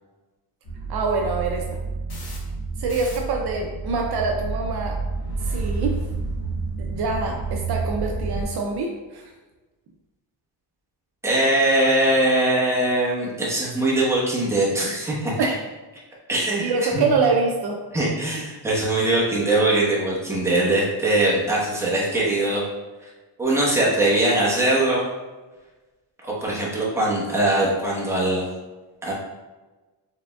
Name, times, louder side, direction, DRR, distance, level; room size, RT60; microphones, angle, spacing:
sound 1, 0.7-8.4, right 4 dB, 55° left, 1.2 m, -29 dB
voice 1, 0.9-1.6 2.8-5.0 5.4-6.0 6.8-9.3 15.4-15.6 16.6-17.8, right 4 dB, 60° right, 1 dB, 0.6 m, -25 dB
voice 2, 11.2-15.4 16.3-17.0 17.9-22.6 23.0-23.1 23.4-25.0 26.2-28.4 29.0-29.1, right 1 dB, 5° right, -6 dB, 1.0 m, -21 dB
4.7 x 3.6 x 2.3 m, 1.2 s
cardioid pair, 145°, 45 cm